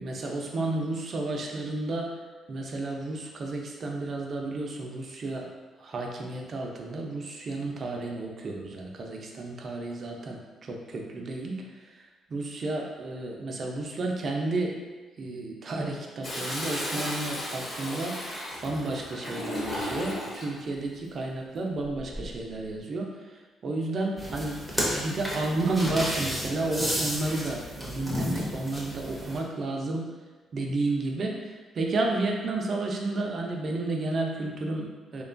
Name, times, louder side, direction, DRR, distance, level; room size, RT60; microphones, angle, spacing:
voice 1, 0.0-2.1 2.5-5.5 5.8-14.8 15.2-18.2 18.6-30.1 30.5-35.2, right 2 dB, 50° right, 0 dB, 0.4 m, -32 dB
Toilet flush, 16.2-20.5 21.9-22.4, left 1 dB, 25° left, 1.1 m, -34 dB
sound 1, 24.2-29.4, equal, 5° right, 0.7 m, -32 dB
2.8 x 2.2 x 2.5 m, 1.3 s
cardioid pair, 90°, 0 cm